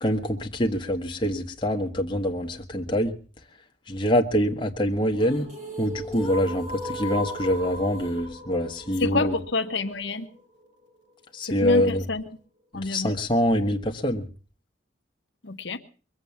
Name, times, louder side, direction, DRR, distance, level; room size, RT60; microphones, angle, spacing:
voice 1, 0.0-3.2 3.9-5.5 5.8-9.3 11.3-12.0 12.7-14.3, equal, 25° left, 2 dB, 1.4 m, -25 dB
sound 1, 4.9-11.0, equal, 45° right, 4.9 m, -37 dB
voice 2, 9.0-10.3 11.4-12.2 12.7-13.1 15.4-15.8, left 3 dB, 80° left, 6 dB, 1.1 m, -28 dB
22.5 x 8.0 x 7.1 m, 0.40 s
head